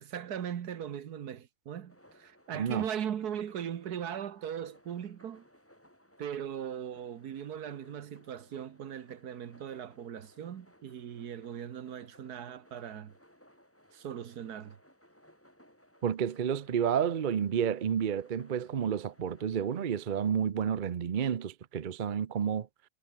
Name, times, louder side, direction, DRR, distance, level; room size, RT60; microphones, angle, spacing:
voice 1, 0.0-5.5 6.2-13.1 13.9-14.8, right 9 dB, 70° right, 1.6 m, -39 dB
sound 1, 1.9-20.3, equal, 5° left, 6.6 m, -61 dB
voice 2, 2.5-2.8 16.0-22.7, right 8 dB, 50° right, 0.6 m, -30 dB
omnidirectional pair, 1.8 m